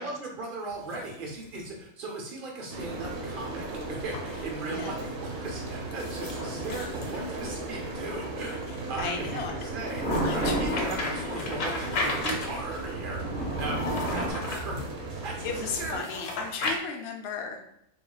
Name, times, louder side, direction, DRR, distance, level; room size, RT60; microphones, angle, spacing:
voice 1, 0.0-3.6 3.9-13.2 13.6-14.8 15.2-16.2 16.6-16.7, right 2 dB, 50° right, -1 dB, 0.7 m, -37 dB
sound 1, 0.7-1.7 3.9-4.3 5.9-7.8 10.0-12.8 13.7-14.9 15.9-16.8, left 2 dB, 80° left, 1.1 m, -35 dB
sound 2, 2.7-16.0, right 2 dB, 85° right, 1.3 m, -36 dB
voice 2, 4.6-5.1 9.0-9.5 10.2-11.6 13.8-14.0 15.4-17.6, left 5 dB, 60° left, 2 dB, 0.8 m, -36 dB
sound 3, 8.9-14.3, right 1 dB, 10° left, 0.4 m, -33 dB
3.9 x 3.1 x 2.3 m, 0.76 s
omnidirectional pair, 1.4 m